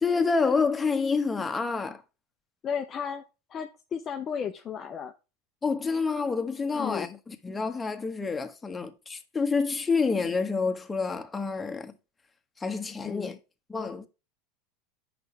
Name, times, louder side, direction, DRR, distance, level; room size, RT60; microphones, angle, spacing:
voice 1, 0.0-2.0 5.6-11.9 12.6-13.3 13.7-14.1, left 4 dB, 15° left, 1.2 m, -28 dB
voice 2, 2.6-3.2 3.5-5.1 6.7-7.2 13.0-13.4, left 7 dB, 35° left, 0.6 m, -34 dB
8.1 x 6.0 x 3.3 m
hypercardioid pair, 90°, 0 cm